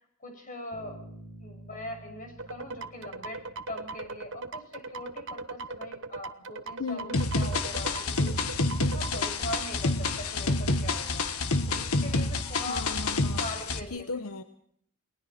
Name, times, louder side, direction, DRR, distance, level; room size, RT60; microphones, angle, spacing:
voice 1, 0.2-1.0 1.4-8.4 8.9-11.3 11.7-12.9 13.4-14.1, left 1 dB, 40° left, 4 dB, 6.5 m, -41 dB
Bass guitar, 0.7-4.5, right 1 dB, ahead, 4.8 m, -50 dB
sound 1, 2.4-9.2, right 3 dB, 60° right, 1.1 m, -39 dB
voice 2, 6.8-7.3 12.7-13.4 13.9-14.4, left 3 dB, 75° left, 9 dB, 1.1 m, -36 dB
sound 2, 7.1-13.8, left 3 dB, 90° left, 1.6 m, -28 dB
30.0 x 20.5 x 4.3 m, 0.67 s
head